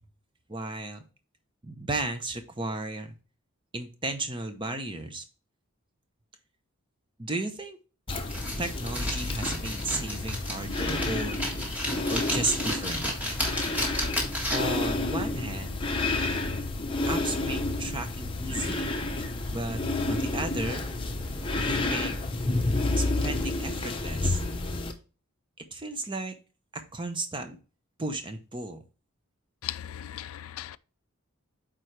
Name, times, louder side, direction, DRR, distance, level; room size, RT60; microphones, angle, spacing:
voice 1, 0.5-1.0 1.6-3.1 3.7-5.2 7.2-7.8 8.6-11.4 12.1-13.1 14.5-15.8 17.1-18.9 19.5-19.8 20.1-20.8 21.6-22.2 22.9-24.4 25.6-26.4 26.7-27.6 28.0-28.8, right 2 dB, 20° right, 0.7 m, -34 dB
sound 1, 8.1-24.9, left 2 dB, 25° left, 0.7 m, -30 dB
sound 2, 8.3-14.8, left 1 dB, 5° right, 1.6 m, -33 dB
voice 2, 29.6-30.8, left 12 dB, 75° left, 0.3 m, -37 dB
9.0 x 3.8 x 3.3 m
head